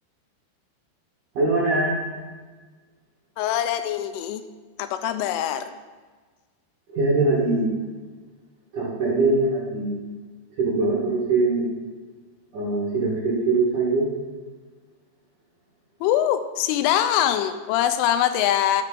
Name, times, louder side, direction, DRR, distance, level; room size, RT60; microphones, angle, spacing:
voice 1, 1.3-2.0 6.9-7.7 8.7-10.0 10.6-11.7 12.5-14.1, right 3 dB, 60° right, -6 dB, 2.3 m, -22 dB
voice 2, 3.4-4.4 4.8-5.7 16.0-18.8, left 11 dB, 85° left, 10 dB, 3.0 m, -23 dB
11.5 x 7.7 x 3.8 m, 1.4 s
omnidirectional pair, 5.6 m